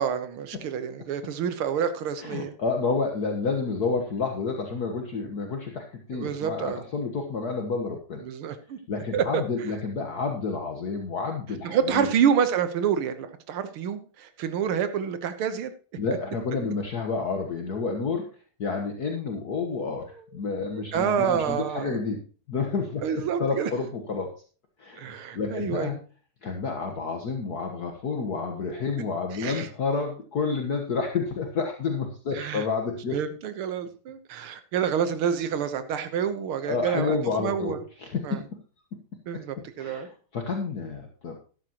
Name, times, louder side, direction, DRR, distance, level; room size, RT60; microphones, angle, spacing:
voice 1, 0.0-2.5 6.1-6.8 8.2-8.8 9.1-9.4 11.6-15.7 20.7-22.0 23.0-23.7 25.0-26.0 29.3-29.7 32.3-32.6 33.1-37.8 38.2-38.4 39.3-40.1, right 8 dB, 80° right, 10 dB, 2.0 m, -28 dB
voice 2, 2.2-8.2 8.9-12.1 16.0-18.3 18.6-22.2 22.5-24.3 24.8-26.0 26.4-33.2 36.7-38.6 38.9-39.0 39.3-41.4, left 4 dB, 50° left, 3 dB, 1.7 m, -30 dB
13.5 x 11.5 x 3.0 m, 0.38 s
omnidirectional pair, 2.3 m